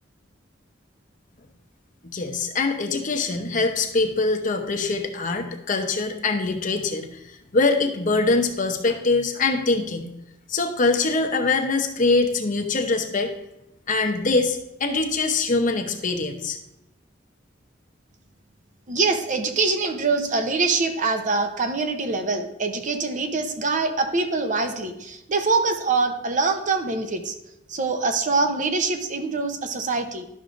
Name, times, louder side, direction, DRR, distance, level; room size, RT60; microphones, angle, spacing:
voice 1, 2.0-10.1 10.5-13.3 13.9-16.6, left 3 dB, 45° left, 5 dB, 0.8 m, -23 dB
voice 2, 18.9-27.3 27.7-30.2, right 3 dB, 45° right, 7 dB, 0.8 m, -24 dB
11.5 x 6.3 x 2.6 m, 0.83 s
head